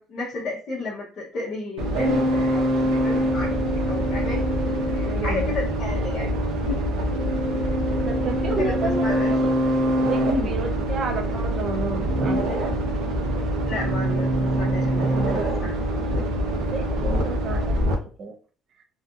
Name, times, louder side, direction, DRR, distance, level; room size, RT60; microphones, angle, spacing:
voice 1, 0.0-4.5 4.9-6.9 8.4-8.7 9.0-9.3 10.2-10.5 13.7-15.8, left 2 dB, 35° left, -6 dB, 0.6 m, -32 dB
sound 1, 1.8-18.0, right 1 dB, 80° right, 0.7 m, -24 dB
voice 2, 5.0-5.7 8.1-9.5 10.0-12.7 16.5-18.4, right 4 dB, 35° right, 4 dB, 0.5 m, -32 dB
2.7 x 2.4 x 2.3 m, 0.38 s
cardioid pair, 175°, 0 cm